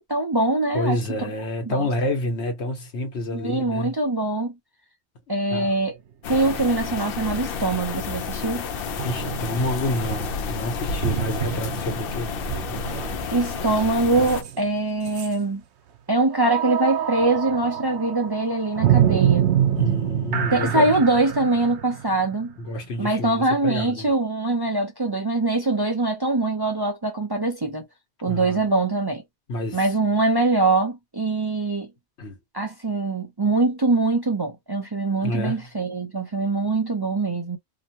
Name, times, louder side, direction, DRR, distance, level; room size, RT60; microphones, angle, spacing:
voice 1, 0.0-1.0 1.7-1.9 3.3-4.5 5.3-6.0 6.3-8.7 13.3-15.6 16.1-19.5 20.5-22.5 23.0-27.8 28.2-29.2 29.7-31.9 32.5-37.6, right 2 dB, 30° right, 0.5 m, -23 dB
voice 2, 0.7-3.9 5.3-5.8 9.0-12.3 19.8-20.8 22.6-24.1 28.3-28.6 29.5-29.9 32.2-32.4 35.2-35.7, left 1 dB, 80° left, 1.3 m, -28 dB
sound 1, 5.7-5.8 9.0-14.8 15.1-15.3 16.3-22.9, right 10 dB, 85° right, 0.9 m, -26 dB
sound 2, 6.2-14.4, left 5 dB, 65° left, 0.7 m, -31 dB
2.9 x 2.1 x 2.8 m
omnidirectional pair, 1.1 m